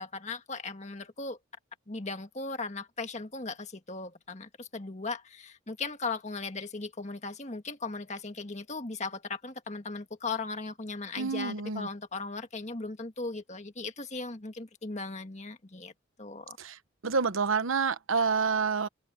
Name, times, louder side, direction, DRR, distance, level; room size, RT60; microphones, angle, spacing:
voice 1, 0.0-1.4 1.9-15.9 16.2-16.6, left 3 dB, 35° left, 1.7 m, -37 dB
voice 2, 11.2-11.9 16.6-18.9, right 5 dB, 85° right, 1.0 m, -28 dB
open air
head